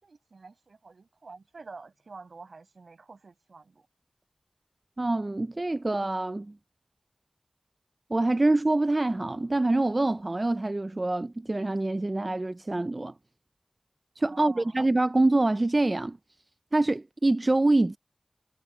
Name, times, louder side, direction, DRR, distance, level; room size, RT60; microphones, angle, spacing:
voice 1, 0.0-3.9 14.3-14.8, right 4 dB, 85° right, 5.8 m, -48 dB
voice 2, 5.0-6.5 8.1-13.1 14.2-16.2 16.7-18.0, right 2 dB, 40° right, 0.4 m, -25 dB
wide cardioid pair, 55°, 0 cm